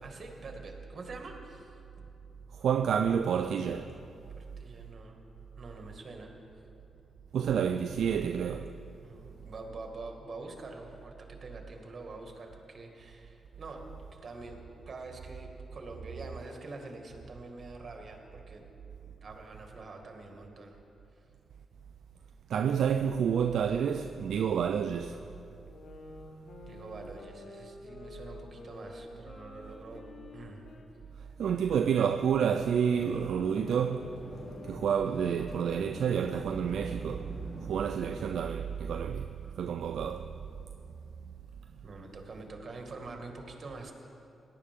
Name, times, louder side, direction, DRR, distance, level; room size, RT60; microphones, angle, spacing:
voice 1, 0.0-1.8 4.4-5.2 5.6-6.6 9.0-14.6 14.9-18.7 19.0-20.8 21.1-21.3 26.7-30.0 30.3-30.7 41.8-43.9, right 3 dB, 50° right, 2.1 m, -46 dB
voice 2, 2.6-3.9 7.3-8.7 22.5-25.2 31.4-34.2 34.7-40.3, right 7 dB, 75° right, 0.4 m, -29 dB
sound 1, 25.7-30.9 31.4-37.0, left 3 dB, 65° left, 1.4 m, -49 dB
Chatter / Fixed-wing aircraft airplane, 32.9-38.4, equal, 10° left, 2.3 m, -46 dB
18.0 x 11.5 x 3.7 m
supercardioid pair, 50°, 0 cm